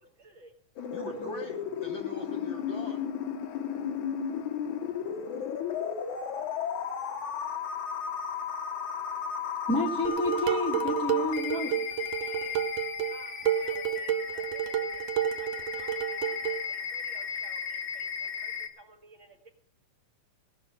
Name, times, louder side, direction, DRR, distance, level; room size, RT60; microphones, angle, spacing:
voice 1, 0.2-0.5 11.5-12.6 13.1-14.6 14.9-19.5, right 2 dB, 55° right, 1.5 m, -54 dB
sound 1, 0.8-18.7, left 7 dB, 80° left, 2.7 m, -34 dB
voice 2, 0.9-3.1, left 3 dB, 55° left, 1.4 m, -41 dB
voice 3, 9.7-11.7, left 1 dB, 5° left, 0.7 m, -29 dB
Dishes pots and pans, 10.0-16.7, right 10 dB, 70° right, 1.5 m, -31 dB
18.0 x 6.3 x 7.5 m
omnidirectional pair, 3.4 m